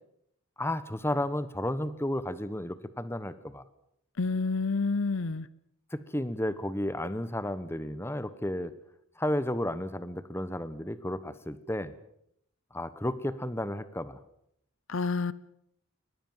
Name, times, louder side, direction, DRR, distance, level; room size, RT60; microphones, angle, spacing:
voice 1, 0.6-3.6 5.9-8.7 9.2-11.9 12.7-14.2, left 1 dB, 10° left, 14 dB, 1.1 m, -32 dB
voice 2, 4.2-5.5 14.9-15.3, left 3 dB, 65° left, 19 dB, 0.8 m, -28 dB
24.0 x 20.5 x 7.4 m, 0.73 s
head